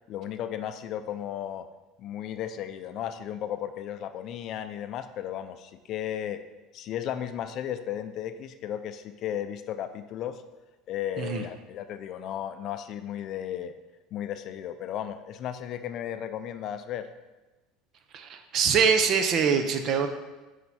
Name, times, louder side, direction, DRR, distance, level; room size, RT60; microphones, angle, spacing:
voice 1, 0.1-1.7 2.0-6.4 6.7-10.4 10.9-13.7 14.1-17.1, left 10 dB, 50° left, 10 dB, 0.4 m, -35 dB
voice 2, 18.1-20.1, right 6 dB, 45° right, 7 dB, 0.7 m, -24 dB
6.6 x 4.5 x 4.2 m, 1.1 s
supercardioid pair, 120°, 0 cm